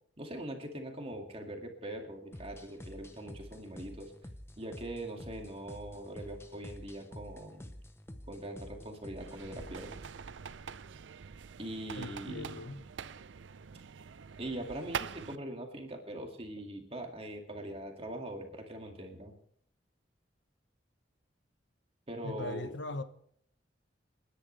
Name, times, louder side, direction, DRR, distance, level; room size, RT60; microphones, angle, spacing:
voice 1, 0.2-4.1 4.6-7.7 8.3-10.0 11.6-12.6 14.4-19.3 22.1-22.7, right 1 dB, 35° right, 2.3 m, -42 dB
sound 1, 2.3-10.0, left 1 dB, 15° left, 0.9 m, -49 dB
sound 2, 9.2-15.4, right 7 dB, 90° right, 0.5 m, -44 dB
voice 2, 12.0-12.9 16.6-16.7 22.2-23.0, left 2 dB, 80° left, 1.1 m, -40 dB
30.0 x 10.5 x 3.4 m
head